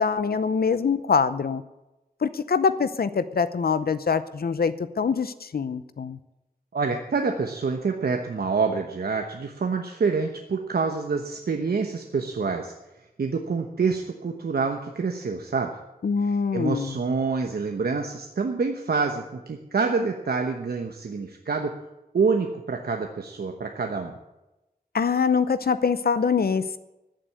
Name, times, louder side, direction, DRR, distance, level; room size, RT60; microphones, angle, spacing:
voice 1, 0.0-1.6 2.2-6.2 16.0-17.0 24.9-26.8, left 5 dB, 75° left, 13 dB, 0.7 m, -24 dB
voice 2, 6.7-12.7 13.2-15.7 16.2-21.7 22.1-24.1, right 4 dB, 90° right, 4 dB, 1.0 m, -27 dB
14.5 x 7.7 x 8.3 m, 0.98 s
wide cardioid pair, 70°, 16 cm